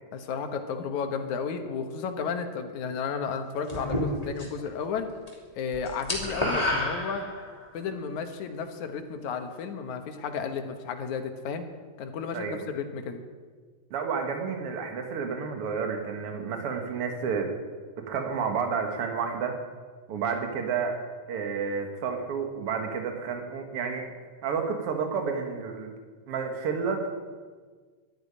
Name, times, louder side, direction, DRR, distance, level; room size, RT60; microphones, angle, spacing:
voice 1, 0.1-5.1 5.6-7.3 7.7-11.6 12.0-13.2, left 6 dB, 80° left, 6 dB, 2.6 m, -33 dB
sound 1, 3.7-4.7 5.0-5.3 5.6-7.7, left 1 dB, 10° left, 2.8 m, -29 dB
voice 2, 12.3-12.6 13.9-17.5 18.1-19.6 20.1-21.0 21.3-24.0 24.4-25.9 26.3-27.1, right 6 dB, 55° right, 4 dB, 2.5 m, -30 dB
12.5 x 9.4 x 9.9 m, 1.5 s
omnidirectional pair, 3.3 m